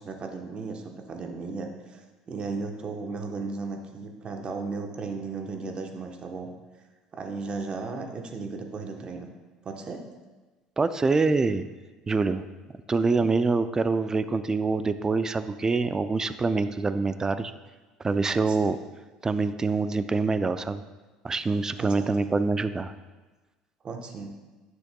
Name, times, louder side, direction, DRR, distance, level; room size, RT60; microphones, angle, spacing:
voice 1, 0.0-6.5 7.1-9.3 9.6-10.0 18.3-18.6 21.8-22.1 23.8-24.3, right 4 dB, 40° right, 4 dB, 1.0 m, -35 dB
voice 2, 10.8-11.6 12.1-12.4 12.9-17.5 18.0-18.8 19.2-20.8 21.2-22.9, right 4 dB, 20° right, 11 dB, 0.4 m, -25 dB
10.0 x 6.2 x 2.3 m, 1.2 s
hypercardioid pair, 75°, 3 cm